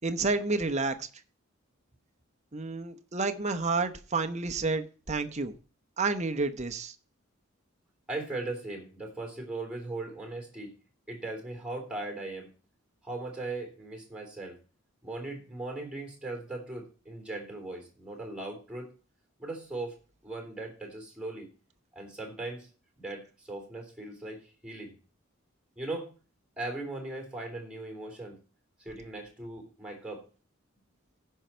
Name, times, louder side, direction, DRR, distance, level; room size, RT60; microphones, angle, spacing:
voice 1, 0.0-1.1 2.5-5.5 6.0-6.9, right 3 dB, 35° right, 1.0 m, -30 dB
voice 2, 8.1-10.7 11.1-12.5 13.0-14.6 15.0-18.9 19.4-20.0 20.2-21.5 21.9-22.7 23.0-25.0 25.8-26.1 26.6-28.4 28.8-30.2, right 2 dB, 5° right, 3.6 m, -38 dB
15.5 x 5.7 x 4.5 m
head